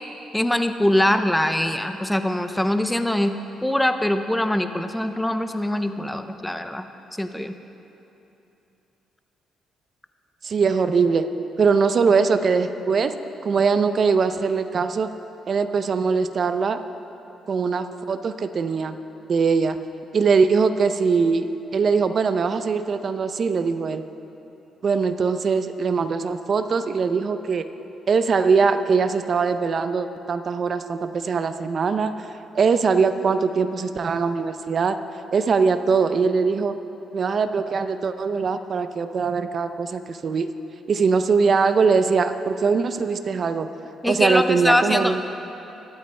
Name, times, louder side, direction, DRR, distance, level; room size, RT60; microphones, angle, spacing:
voice 1, 0.3-3.3 3.6-6.8 7.2-7.5 44.0-45.2, left 1 dB, 5° left, 8 dB, 0.6 m, -22 dB
voice 2, 10.4-11.3 11.6-13.1 13.4-15.1 15.5-16.8 17.5-19.0 19.3-19.8 20.1-21.5 21.7-24.0 24.8-27.7 28.1-32.2 32.5-35.0 35.3-36.7 37.1-40.5 40.9-43.7 44.1-45.2, right 5 dB, 50° right, 10 dB, 0.6 m, -21 dB
22.5 x 8.9 x 3.3 m, 3.0 s
cardioid pair, 90°, 0 cm